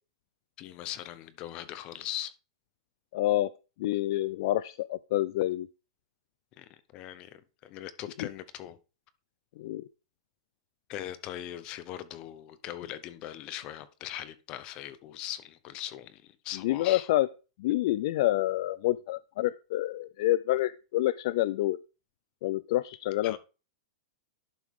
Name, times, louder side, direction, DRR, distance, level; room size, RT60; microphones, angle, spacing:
voice 1, 0.6-2.3 6.6-8.8 10.9-17.1 23.2-23.4, left 12 dB, 30° left, 0.7 m, -40 dB
voice 2, 3.1-3.5 3.8-5.7 8.2-8.3 9.6-9.8 16.6-17.3 17.6-21.8 22.4-23.4, left 15 dB, 45° left, 0.3 m, -28 dB
11.5 x 4.7 x 3.6 m
supercardioid pair, 165°, 3 cm